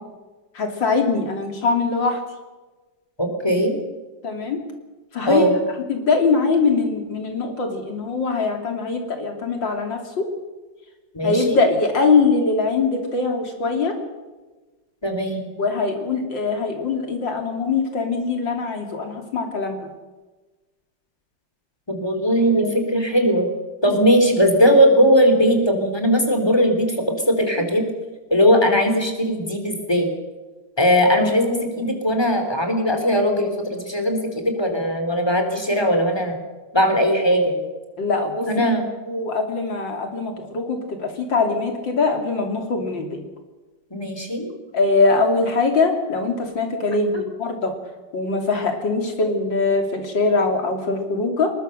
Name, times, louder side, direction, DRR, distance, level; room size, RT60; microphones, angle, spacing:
voice 1, 0.6-2.2 4.2-4.6 5.1-5.5 5.9-10.3 11.2-13.9 15.6-19.8 22.6-22.7 38.0-38.5 39.1-43.2 44.7-47.7 48.1-51.5, left 4 dB, 80° left, 4 dB, 3.8 m, -22 dB
voice 2, 3.2-3.8 5.3-5.5 11.1-11.6 15.0-15.4 21.9-23.5 23.8-27.9 28.3-30.1 30.8-36.4 36.7-37.6 38.5-38.9 43.9-44.5 47.1-47.2 49.2-49.3, equal, 15° left, 5 dB, 3.6 m, -19 dB
22.0 x 20.0 x 6.7 m, 1.2 s
omnidirectional pair, 2.0 m